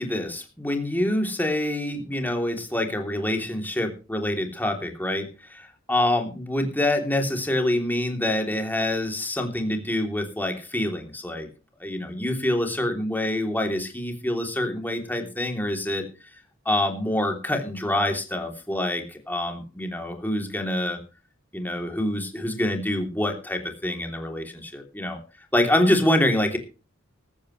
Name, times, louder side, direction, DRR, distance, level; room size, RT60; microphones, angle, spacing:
voice 1, 0.0-11.5 11.8-16.0 16.6-21.0 21.5-25.2 25.5-26.6, left 1 dB, 10° left, 3 dB, 3.2 m, -26 dB
16.0 x 14.0 x 3.3 m, 0.33 s
head